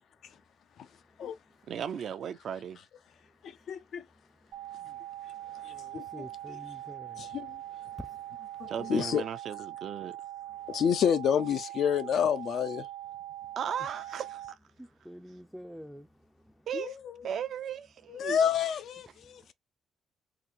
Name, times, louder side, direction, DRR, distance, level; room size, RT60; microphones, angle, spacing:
voice 1, 1.7-2.8 8.7-10.2 13.6-14.4 16.7-17.0 17.2-18.4, right 8 dB, 65° right, 0.5 m, -36 dB
voice 2, 3.4-4.0 5.6-6.6 7.2-7.6 8.6-9.2 10.7-12.9 16.7-17.2 18.1-19.5, left 8 dB, 65° left, 0.5 m, -29 dB
sound 1, 4.5-14.5, right 13 dB, 85° right, 0.9 m, -42 dB
voice 3, 5.6-7.2 14.8-16.1, equal, ahead, 0.4 m, -47 dB
3.9 x 2.5 x 2.9 m
cardioid pair, 90°, 0 cm